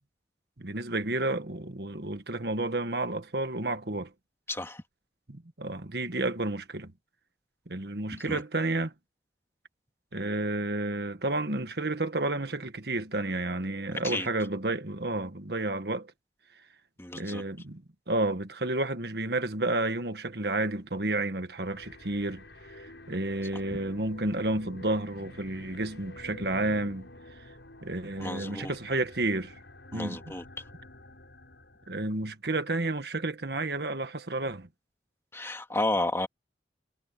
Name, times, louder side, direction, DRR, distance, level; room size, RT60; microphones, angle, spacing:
voice 1, 0.6-4.1 5.3-6.9 7.7-8.9 10.1-16.1 17.1-27.1 27.8-29.5 29.9-30.3 31.9-34.7, right 2 dB, 60° right, 1.6 m, -31 dB
voice 2, 4.5-4.8 8.1-8.4 14.0-14.3 17.0-17.4 28.2-28.7 29.9-30.4 35.3-36.3, left 2 dB, 15° left, 2.4 m, -32 dB
sound 1, 21.5-32.1, left 1 dB, 80° left, 7.3 m, -49 dB
head